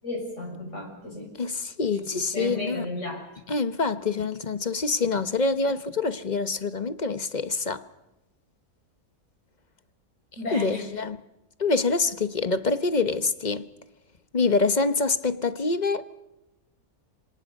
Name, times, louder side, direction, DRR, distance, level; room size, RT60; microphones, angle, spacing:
voice 1, 0.0-1.3 2.1-3.2 10.4-10.9, left 1 dB, 50° left, 6.7 m, -34 dB
voice 2, 1.4-2.9 3.5-7.8 10.5-11.2 11.6-13.7 14.3-16.1, left 3 dB, 35° left, 1.0 m, -26 dB
26.5 x 25.5 x 5.4 m
omnidirectional pair, 1.6 m